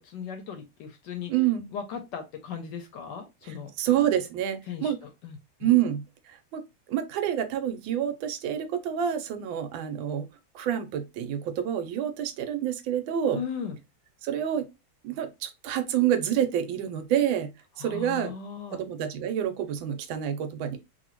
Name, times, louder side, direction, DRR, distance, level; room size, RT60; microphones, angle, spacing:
voice 1, 0.0-1.3 1.7-3.7 4.7-5.7 13.3-13.8 17.8-18.8, left 7 dB, 70° left, 1.1 m, -37 dB
voice 2, 1.3-1.7 3.8-5.0 5.6-10.2 10.5-13.4 14.2-14.7 15.0-17.5 17.8-18.3 18.7-20.8, right 10 dB, 80° right, 1.3 m, -28 dB
3.0 x 2.6 x 2.9 m
omnidirectional pair, 2.2 m